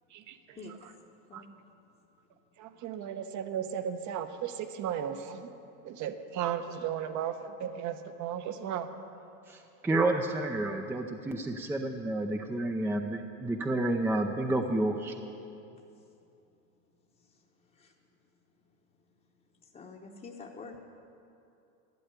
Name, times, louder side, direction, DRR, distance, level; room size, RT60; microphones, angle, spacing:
voice 1, 0.1-0.9 1.3-1.4 2.6-5.5 5.8-8.9, right 9 dB, 50° right, 9 dB, 1.0 m, -35 dB
voice 2, 9.5-15.1, right 2 dB, 5° right, 4 dB, 0.5 m, -30 dB
voice 3, 19.7-20.8, left 4 dB, 20° left, -3 dB, 1.0 m, -46 dB
12.0 x 9.8 x 8.2 m, 2.7 s
supercardioid pair, 115°, 39 cm